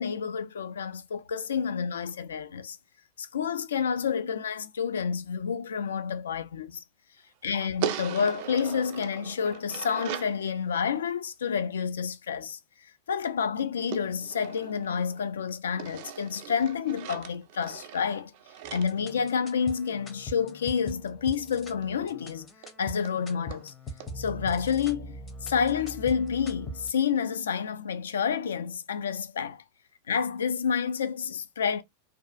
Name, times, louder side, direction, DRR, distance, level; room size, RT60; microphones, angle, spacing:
voice 1, 0.0-2.8 3.2-6.8 7.4-12.6 13.1-18.3 18.7-22.5 22.8-23.7 24.2-29.6 30.1-31.8, left 6 dB, 65° left, 0.3 m, -29 dB
sound 1, 7.8-10.4 13.9-15.3 15.8-19.9 21.8-21.9 22.2-22.3 22.6-22.7 23.0-23.2 23.5-23.6 24.0-24.1, right 10 dB, 45° right, 0.3 m, -39 dB
sound 2, 18.6-26.9, equal, 20° left, 0.6 m, -42 dB
2.4 x 2.3 x 2.3 m
figure-of-eight pair, 90°, 0 cm